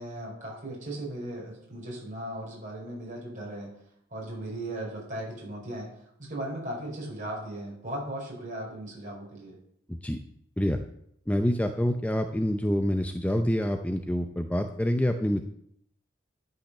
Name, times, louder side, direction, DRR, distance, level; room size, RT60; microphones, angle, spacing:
voice 1, 0.0-3.7 4.1-5.9 6.2-9.5, right 1 dB, 40° right, -3 dB, 5.4 m, -37 dB
voice 2, 11.3-15.4, equal, 5° left, 6 dB, 0.5 m, -27 dB
12.0 x 5.7 x 6.6 m, 0.73 s
head